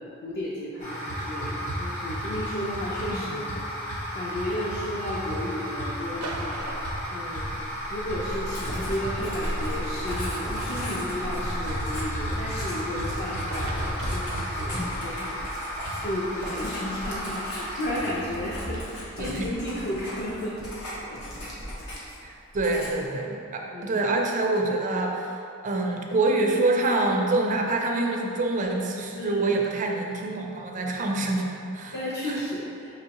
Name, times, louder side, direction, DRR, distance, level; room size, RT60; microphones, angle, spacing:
voice 1, 0.0-3.6 4.1-6.7 7.1-7.6 7.9-15.5 16.0-20.6 21.0-21.5 21.8-22.0 23.7-24.0 29.1-29.6 31.9-33.0, left 1 dB, 50° left, -7 dB, 0.5 m, -33 dB
sound 1, 0.8-18.8, equal, 35° left, 1.0 m, -33 dB
sound 2, 6.2-8.0 9.3-9.4 10.3-10.4 13.2-13.3 13.5-14.9 18.3-18.4, right 2 dB, 85° right, 0.6 m, -40 dB
Writing, 8.5-22.3 22.5-23.1, left 1 dB, 75° left, 1.0 m, -38 dB
voice 2, 22.2-25.4 25.6-31.9 32.2-32.4, right 2 dB, 35° right, 1 dB, 0.4 m, -26 dB
5.3 x 3.0 x 2.9 m, 2.6 s
head